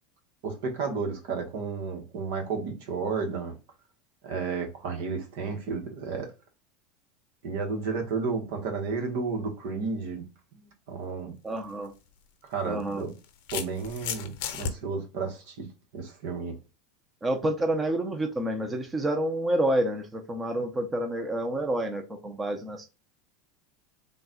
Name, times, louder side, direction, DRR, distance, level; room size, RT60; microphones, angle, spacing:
voice 1, 0.4-3.6 4.2-6.3 7.4-10.2 10.5-11.4 12.4-13.1 13.5-16.6, right 4 dB, 70° right, 1.2 m, -32 dB
voice 2, 11.4-11.9 12.6-13.0 17.2-22.9, right 1 dB, 20° right, 0.8 m, -28 dB
sound 1, 11.5-11.7 12.8-14.7, left 9 dB, 70° left, 0.7 m, -34 dB
3.9 x 2.3 x 3.9 m
supercardioid pair, 110°, 0 cm